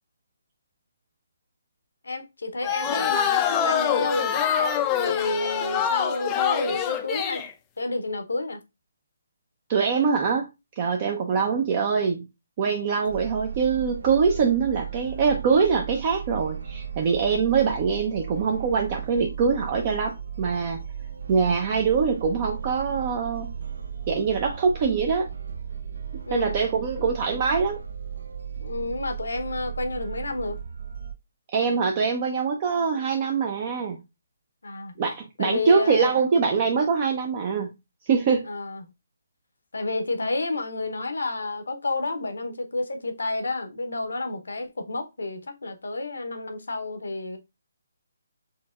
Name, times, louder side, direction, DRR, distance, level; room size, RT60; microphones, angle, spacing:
voice 1, 2.0-4.5 5.0-7.4 7.8-8.6 26.3-26.5 27.0-27.1 28.6-30.6 34.6-34.9 35.4-36.2 38.5-38.9 39.7-47.4, left 2 dB, 75° left, 0.8 m, -30 dB
sound 1, 2.6-7.5, left 8 dB, 20° left, 0.4 m, -25 dB
voice 2, 9.7-10.5 10.8-12.3 12.6-20.8 21.3-23.5 24.1-25.3 26.3-27.8 31.5-34.0 35.0-37.7 38.1-38.5, right 5 dB, 35° right, 0.6 m, -23 dB
sound 2, 13.1-31.1, right 7 dB, 70° right, 0.8 m, -36 dB
4.4 x 2.8 x 2.4 m
figure-of-eight pair, 145°, 0 cm